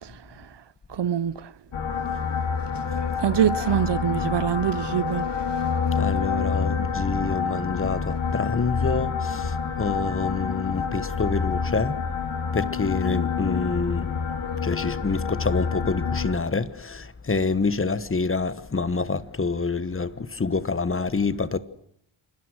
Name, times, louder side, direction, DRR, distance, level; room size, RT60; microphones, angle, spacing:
voice 1, 0.0-0.6 0.9-1.5 3.2-5.3, right 9 dB, 55° right, 0.9 m, -25 dB
sound 1, 1.7-16.3, left 6 dB, 75° left, 4.9 m, -27 dB
sound 2, 2.3-7.3 7.8-8.2, left 4 dB, 55° left, 3.2 m, -39 dB
voice 2, 5.9-12.0 12.5-14.1 14.6-21.6, left 4 dB, 25° left, 1.3 m, -27 dB
28.5 x 24.0 x 6.3 m
wide cardioid pair, 145°, 49 cm